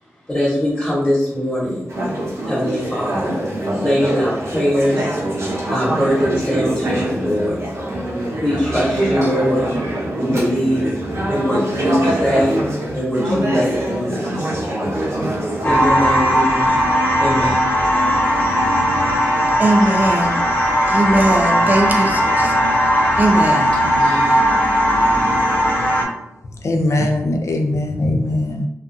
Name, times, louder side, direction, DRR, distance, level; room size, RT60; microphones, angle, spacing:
voice 1, 0.3-1.9 2.4-3.4 3.8-5.2 5.7-7.6 8.4-9.7 10.1-10.9 11.3-12.6 12.9-14.6 15.6-16.8 17.2-17.6 23.8-24.3, equal, 15° left, -8 dB, 1.1 m, -21 dB
Conversation / Chatter, 1.9-15.9, right 1 dB, 70° right, 0.7 m, -23 dB
sound 1, 15.6-26.0, equal, 45° left, 0.9 m, -17 dB
voice 2, 19.6-20.5 20.9-22.5 23.1-23.7 24.3-24.4, right 1 dB, 35° right, 2 dB, 0.5 m, -19 dB
voice 3, 26.5-28.7, left 1 dB, 75° left, 3 dB, 0.4 m, -20 dB
2.4 x 2.3 x 2.6 m, 0.81 s
cardioid pair, 55°, 5 cm